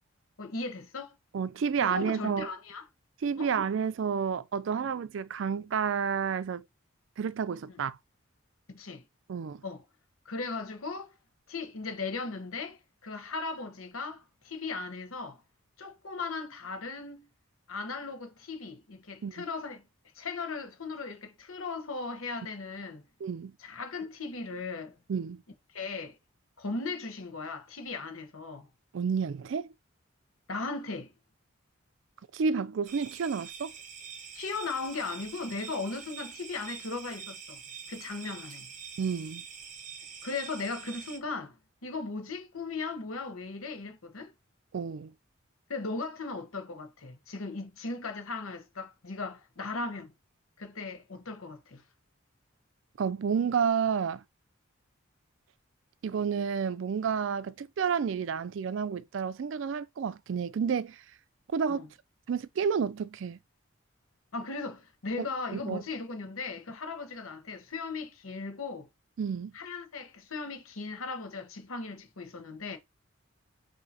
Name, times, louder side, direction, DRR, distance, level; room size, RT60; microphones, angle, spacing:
voice 1, 0.4-1.1 1.8-2.8 3.4-3.5 4.8-4.9 8.7-9.0 9.6-9.8 10.2-11.1 11.5-15.4 15.8-17.3 17.7-19.8 20.1-23.0 23.6-25.0 25.7-26.2 26.6-28.7 30.5-31.1 34.3-37.6 37.9-38.7 40.2-41.6 41.8-44.3 45.7-50.1 50.6-51.8 61.7-61.9 64.3-68.9 69.5-72.8, left 3 dB, 90° left, 1.0 m, -37 dB
voice 2, 1.3-2.5 3.2-6.6 7.2-8.0 9.3-9.6 19.2-19.4 23.2-23.5 25.1-25.4 28.9-29.7 32.3-33.7 39.0-39.4 44.7-45.1 53.0-54.2 56.0-61.0 61.5-61.8 62.3-63.4 65.2-65.3 65.5-65.8 69.2-69.5, right 6 dB, 65° right, 0.3 m, -30 dB
sound 1, 32.9-41.2, right 7 dB, 35° right, 0.8 m, -45 dB
5.8 x 2.7 x 2.7 m
head